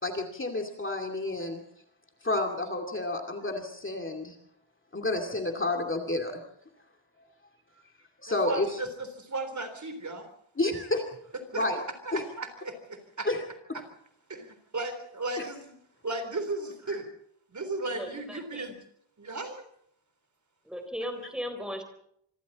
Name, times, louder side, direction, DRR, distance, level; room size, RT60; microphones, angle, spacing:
voice 1, 0.0-1.6 2.2-4.4 4.9-6.4 8.2-8.8 10.6-11.0 11.5-11.8 12.1-12.2 13.3-13.4, left 2 dB, 25° left, 2 dB, 2.5 m, -30 dB
voice 2, 8.3-10.2 11.5-11.7 12.1-13.3 13.7-13.8 14.3-15.7 16.0-17.1 17.5-18.7 19.2-19.6, right 2 dB, 35° right, 8 dB, 3.7 m, -35 dB
voice 3, 17.9-18.7 20.7-21.8, equal, ahead, 6 dB, 3.8 m, -37 dB
26.0 x 25.0 x 4.2 m, 0.70 s
wide cardioid pair, 180°, 48 cm